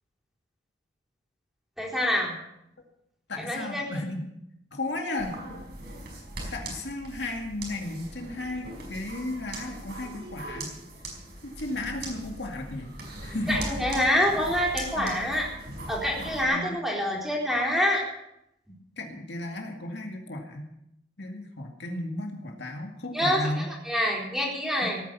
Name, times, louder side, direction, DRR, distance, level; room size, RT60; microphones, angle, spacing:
voice 1, 1.8-2.4 3.4-3.8 13.5-15.5 15.9-18.0 23.1-25.0, left 1 dB, ahead, -3 dB, 4.3 m, -26 dB
voice 2, 3.3-4.3 4.7-5.4 6.5-10.7 11.4-13.6 15.0-15.1 16.2-16.8 19.0-20.7 21.2-23.7, left 2 dB, 65° left, 2 dB, 2.2 m, -34 dB
sound 1, 5.2-16.4, right 1 dB, 60° right, 5.2 m, -40 dB
18.0 x 9.7 x 7.0 m, 0.80 s
head